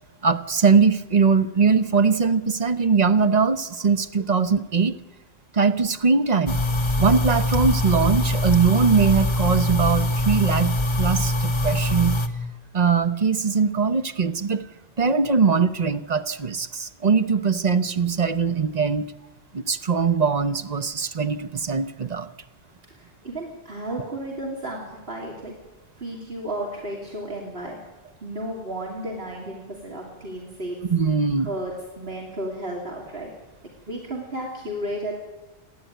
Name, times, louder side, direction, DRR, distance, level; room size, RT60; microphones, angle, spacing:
voice 1, 0.2-5.0 5.5-6.6 7.0-12.2 12.7-14.7 15.0-19.1 19.5-22.3 30.8-31.5, right 5 dB, 45° right, 10 dB, 0.9 m, -21 dB
sound 1, 6.5-12.3, left 1 dB, 30° left, 1.2 m, -23 dB
voice 2, 22.9-25.5 26.0-27.8 28.2-30.8 31.4-33.3 33.9-35.1, right 1 dB, 75° right, -2 dB, 3.0 m, -33 dB
29.0 x 10.5 x 9.2 m, 1.1 s
omnidirectional pair, 1.0 m